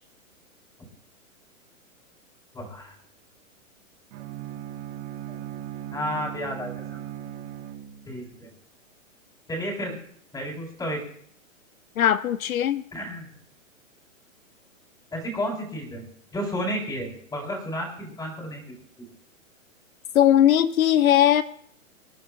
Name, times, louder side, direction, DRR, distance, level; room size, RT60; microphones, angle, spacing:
voice 1, 2.5-3.0 5.3-5.4 5.9-6.7 8.1-8.5 9.5-10.0 10.3-11.0 12.9-13.3 15.1-16.0 16.3-18.6 19.0-19.1, equal, 10° left, -1 dB, 3.9 m, -32 dB
Bowed string instrument, 4.1-8.3, right 12 dB, 40° right, 3.3 m, -38 dB
voice 2, 12.0-12.8 20.1-21.4, left 11 dB, 80° left, 13 dB, 0.8 m, -19 dB
26.0 x 10.5 x 2.4 m, 0.63 s
hypercardioid pair, 145°, 41 cm